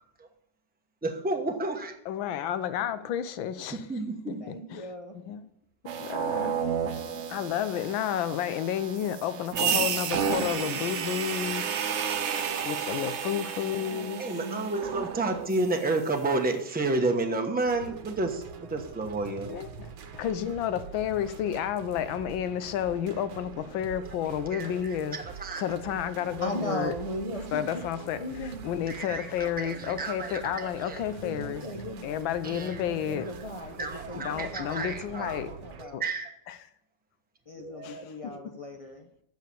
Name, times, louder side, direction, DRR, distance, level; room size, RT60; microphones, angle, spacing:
voice 1, 1.0-1.9 3.9-4.4 14.2-19.5 24.5-24.7 25.1-25.6 28.9-31.0 32.4-32.8 33.8-36.3 37.5-38.4, right 2 dB, 10° right, 0.6 m, -31 dB
voice 2, 2.0-5.5 6.0-6.6 7.3-11.7 12.6-14.2 19.5-26.9 27.5-31.7 32.0-33.3 34.1-35.5 35.9-36.0 36.5-36.7 37.8-38.4, left 10 dB, 85° left, 1.5 m, -31 dB
voice 3, 4.4-5.2 13.6-14.7 25.5-25.6 26.4-27.8 28.2-28.6 31.2-32.1 32.5-36.0 37.5-39.1, equal, 60° left, 0.3 m, -38 dB
sound 1, 5.9-16.0, right 7 dB, 65° right, 0.7 m, -31 dB
sound 2, 17.6-35.9, right 6 dB, 80° right, 1.6 m, -44 dB
8.4 x 6.6 x 6.7 m
omnidirectional pair, 2.1 m